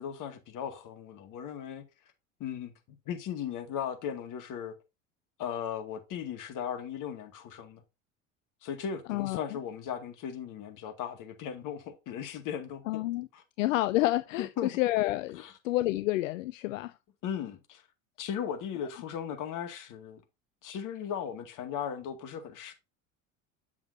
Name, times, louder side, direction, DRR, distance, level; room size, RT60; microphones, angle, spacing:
voice 1, 0.0-1.8 2.4-4.8 5.4-7.8 8.6-13.0 13.3-13.4 14.4-14.7 15.4-15.5 17.2-17.8 18.2-20.2 20.6-22.7, left 8 dB, 50° left, 2.1 m, -37 dB
voice 2, 9.1-9.5 12.9-13.3 13.6-16.9, left 17 dB, 75° left, 0.6 m, -29 dB
8.3 x 7.1 x 2.7 m
hypercardioid pair, 70°, 39 cm